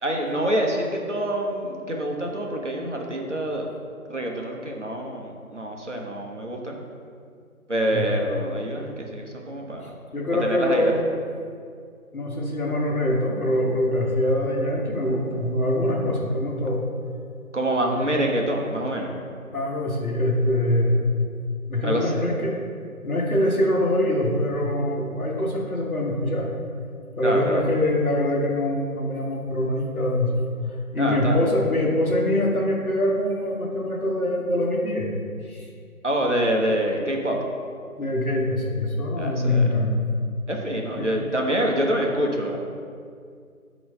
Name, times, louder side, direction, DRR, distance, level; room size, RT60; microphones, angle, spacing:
voice 1, 0.0-3.7 4.1-6.8 7.7-9.9 10.4-10.9 17.5-19.1 21.8-22.3 27.2-27.7 31.0-31.5 36.0-37.4 39.2-39.7 40.5-42.6, right 1 dB, 50° right, 0 dB, 0.8 m, -26 dB
voice 2, 10.1-11.0 12.1-16.8 17.9-18.1 19.5-21.1 21.7-22.6 23.0-26.5 27.2-30.6 30.9-35.1 35.5-35.7 38.0-39.9 41.0-41.1, left 1 dB, 70° left, -1 dB, 1.3 m, -24 dB
7.2 x 3.1 x 5.4 m, 2.2 s
figure-of-eight pair, 175°, 45 cm